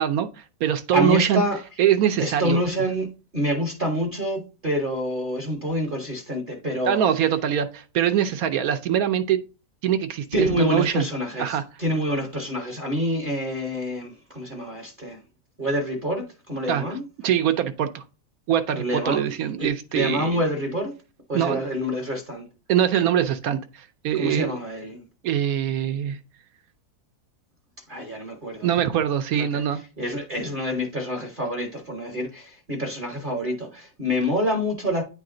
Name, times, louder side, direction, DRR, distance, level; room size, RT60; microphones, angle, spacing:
voice 1, 0.0-1.4 1.8-2.6 6.9-9.4 9.8-11.1 11.4-11.6 16.7-17.0 17.2-18.0 18.5-20.4 21.3-21.7 22.7-24.5 25.2-26.2 28.6-29.8, right 10 dB, 70° right, 0.9 m, -23 dB
voice 2, 0.9-1.6 2.2-7.0 10.3-15.2 15.6-17.0 18.7-21.0 21.3-22.5 24.1-25.0 27.9-28.7 29.4-29.6 30.0-35.0, equal, 40° right, 0.9 m, -27 dB
9.4 x 3.2 x 3.7 m
omnidirectional pair, 1.8 m